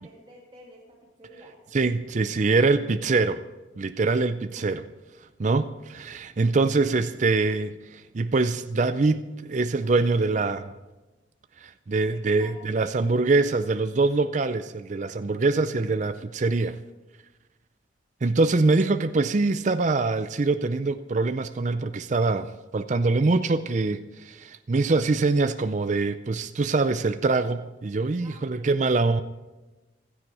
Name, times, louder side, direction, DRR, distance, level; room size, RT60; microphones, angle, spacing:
voice 1, 0.0-1.5 2.7-2.8 4.6-4.7 12.1-12.6 28.2-29.0, right 1 dB, 25° right, -3 dB, 2.2 m, -50 dB
voice 2, 1.7-3.4 3.8-4.8 5.4-10.7 11.6-16.8 18.2-29.2, right 3 dB, 40° right, 11 dB, 0.4 m, -24 dB
16.0 x 13.5 x 4.8 m, 1.1 s
head